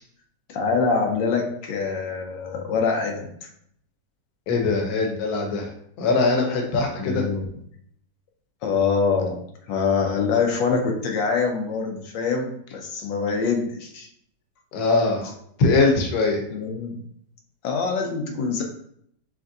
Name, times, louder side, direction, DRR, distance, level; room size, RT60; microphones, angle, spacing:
voice 1, 0.5-3.3 7.0-7.4 8.6-9.4 9.7-14.1 16.5-17.0 17.6-18.6, left 5 dB, 90° left, 2 dB, 1.4 m, -24 dB
voice 2, 4.5-7.3 14.7-15.3 15.6-16.4, left 3 dB, 65° left, 2 dB, 1.3 m, -22 dB
5.2 x 3.3 x 2.6 m, 0.68 s
omnidirectional pair, 1.9 m